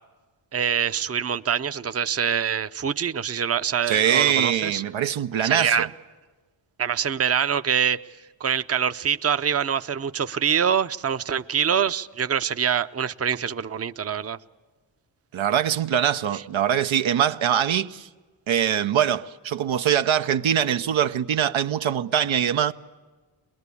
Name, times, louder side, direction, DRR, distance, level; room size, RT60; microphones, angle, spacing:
voice 1, 0.5-4.8 5.4-5.9 6.8-8.1 8.4-14.4 16.3-16.4, right 8 dB, 30° right, 0.6 m, -25 dB
voice 2, 3.9-5.9 15.3-18.1 18.5-22.7, right 9 dB, 80° right, 0.7 m, -23 dB
22.0 x 22.0 x 8.4 m
cardioid pair, 60°, 46 cm